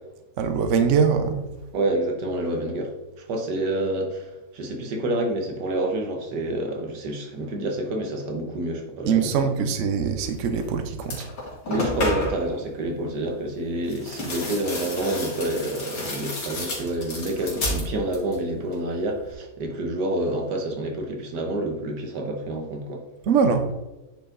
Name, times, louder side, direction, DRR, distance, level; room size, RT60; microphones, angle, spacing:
voice 1, 0.4-1.5 9.0-11.3 23.3-23.6, right 6 dB, 55° right, 7 dB, 1.0 m, -22 dB
voice 2, 1.7-9.3 11.7-23.0, right 1 dB, 85° right, 2 dB, 1.8 m, -28 dB
sound 1, 10.6-10.7 11.0-12.5 13.8-18.4 18.7-19.3, left 2 dB, 85° left, 2.7 m, -31 dB
9.3 x 4.8 x 3.9 m, 1.1 s
omnidirectional pair, 1.8 m